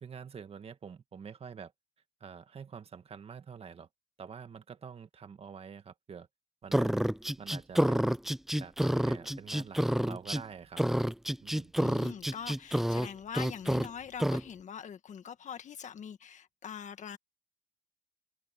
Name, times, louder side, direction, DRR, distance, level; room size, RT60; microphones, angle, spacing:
voice 1, 0.0-1.7 2.2-3.9 4.2-6.3 6.6-7.1 7.4-8.2 8.6-10.8 11.4-11.7, right 6 dB, 35° right, 1.8 m, -47 dB
sound 1, 6.7-10.4 10.8-13.1 13.3-13.9 14.2-14.4, equal, ahead, 0.4 m, -28 dB
voice 2, 11.8-17.2, left 8 dB, 45° left, 1.7 m, -43 dB
cardioid pair, 110°, 17 cm